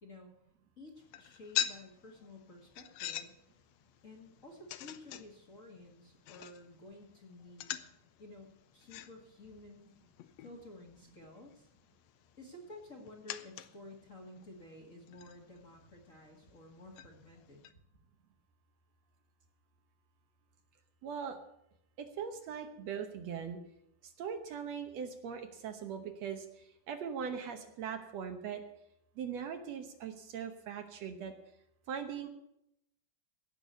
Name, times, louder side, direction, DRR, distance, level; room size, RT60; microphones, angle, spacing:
voice 1, 0.8-3.3 4.0-7.8 8.2-10.0 10.4-11.7 12.4-17.7, left 2 dB, 30° left, 0 dB, 1.8 m, -53 dB
sound 1, 1.0-17.7, left 11 dB, 75° left, 1.7 m, -45 dB
voice 2, 21.0-21.4 22.0-23.6 24.0-26.5 26.9-28.6 29.2-31.3 31.9-32.3, right 7 dB, 65° right, 6 dB, 2.1 m, -40 dB
16.5 x 6.1 x 8.1 m, 0.79 s
omnidirectional pair, 3.5 m